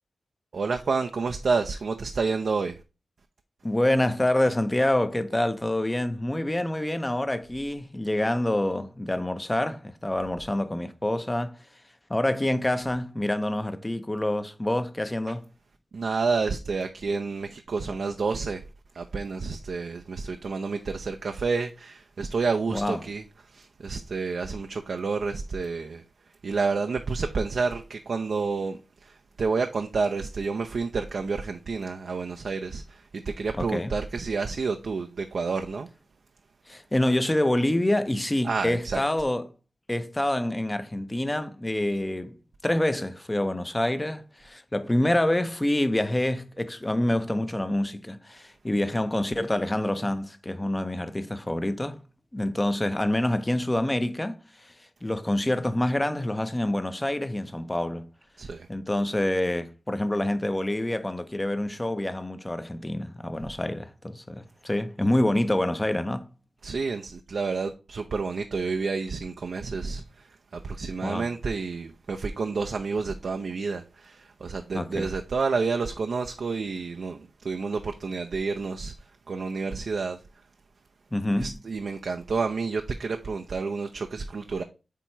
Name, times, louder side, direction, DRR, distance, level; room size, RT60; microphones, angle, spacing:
voice 1, 0.5-2.8 15.9-18.6 18.9-26.0 26.4-35.9 38.4-39.0 58.4-58.7 66.6-80.2 81.4-84.6, right 4 dB, 65° right, 0.6 m, -29 dB
voice 2, 3.6-11.6 12.1-15.4 22.7-23.0 33.6-33.9 36.7-39.5 39.9-42.4 42.6-52.0 52.3-54.7 55.0-58.1 58.7-66.3 71.0-71.3 74.7-75.1 81.1-81.6, left 1 dB, 15° left, 0.7 m, -27 dB
8.4 x 3.0 x 4.5 m
wide cardioid pair, 90°, 0 cm